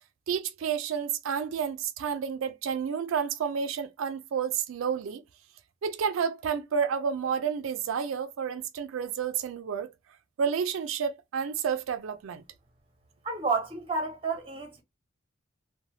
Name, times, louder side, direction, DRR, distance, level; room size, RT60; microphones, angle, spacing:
voice 1, 0.3-5.2 5.8-9.9 10.4-12.4, right 7 dB, 90° right, 0.4 m, -30 dB
voice 2, 13.2-14.8, right 4 dB, 25° right, 0.7 m, -30 dB
2.6 x 2.2 x 3.1 m
head